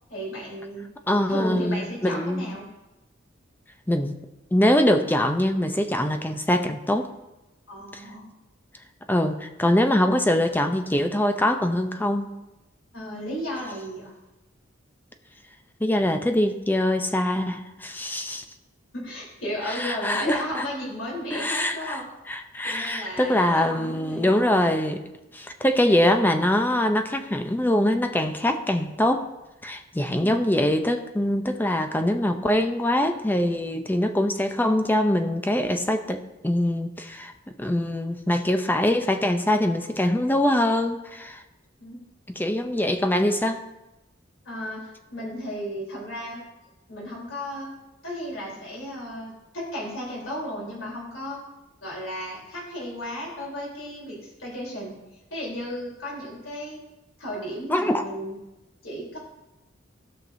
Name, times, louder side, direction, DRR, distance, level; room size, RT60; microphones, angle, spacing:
voice 1, 0.1-0.9 1.3-2.7 7.7-8.3 12.9-14.1 18.9-22.0 22.6-24.3 30.2-30.5 41.8-42.0 44.4-46.4 46.9-47.7 48.0-51.4 51.8-54.9 55.3-56.8 57.2-58.4 58.8-59.2, equal, 80° left, -4 dB, 3.4 m, -34 dB
voice 2, 1.1-2.5 3.9-4.1 4.5-7.1 7.9-8.0 9.1-12.3 15.8-18.4 19.7-20.7 21.3-22.0 22.3-25.0 25.3-29.3 29.6-37.3 37.6-41.4 42.4-43.6 57.7-58.0, left 1 dB, 10° left, 6 dB, 0.5 m, -23 dB
17.0 x 5.9 x 2.6 m, 1.0 s
head